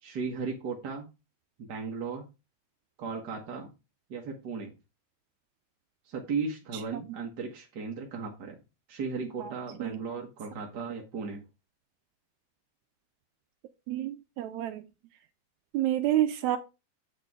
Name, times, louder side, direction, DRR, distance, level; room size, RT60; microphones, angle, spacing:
voice 1, 0.0-1.1 1.6-2.2 3.0-3.7 4.1-4.7 6.1-8.5 8.9-11.4, right 5 dB, 50° right, 1.2 m, -36 dB
voice 2, 13.9-14.8 15.7-16.6, right 13 dB, 80° right, 1.9 m, -28 dB
8.2 x 4.3 x 4.6 m
omnidirectional pair, 3.5 m